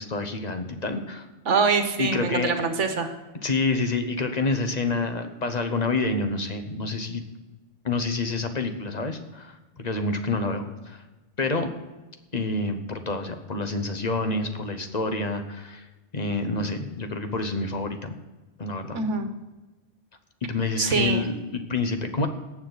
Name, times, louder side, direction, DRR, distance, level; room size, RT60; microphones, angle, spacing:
voice 1, 0.0-1.3 2.0-2.7 3.4-7.2 7.8-11.0 11.4-11.7 12.3-15.9 16.1-18.1 18.6-19.0 20.4-22.3, left 3 dB, 40° left, 7 dB, 1.0 m, -28 dB
voice 2, 1.4-3.1 18.9-19.3 20.8-21.3, right 4 dB, 75° right, 7 dB, 1.5 m, -24 dB
18.5 x 7.2 x 4.0 m, 1.1 s
omnidirectional pair, 1.2 m